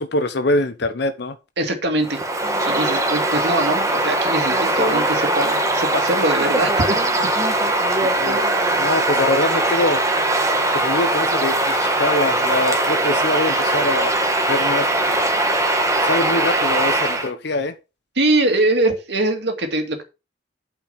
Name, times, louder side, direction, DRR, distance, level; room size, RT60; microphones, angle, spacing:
voice 1, 0.0-1.4 8.0-8.5 8.8-10.0 10.7-14.2 14.5-15.3 16.0-17.7, left 2 dB, 65° left, 0.9 m, -23 dB
voice 2, 1.6-6.7 18.2-20.0, right 2 dB, 65° right, 2.3 m, -22 dB
Bird vocalization bird call bird song, 2.0-17.3, right 1 dB, 15° right, 1.5 m, -20 dB
8.9 x 5.2 x 5.7 m
head